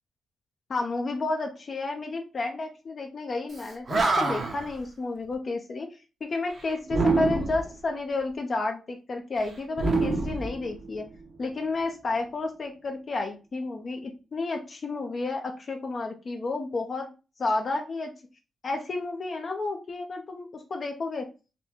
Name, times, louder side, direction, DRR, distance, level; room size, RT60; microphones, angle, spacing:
voice 1, 0.7-5.9 6.2-11.1 11.4-17.1 17.4-18.1 18.6-21.3, left 3 dB, 45° left, 3 dB, 0.6 m, -31 dB
Animal, 3.6-3.7 3.9-4.7 6.9-7.7 9.7-11.1, right 3 dB, 50° right, 0.8 m, -26 dB
4.0 x 2.2 x 2.8 m, 0.31 s
cardioid pair, 85°, 0 cm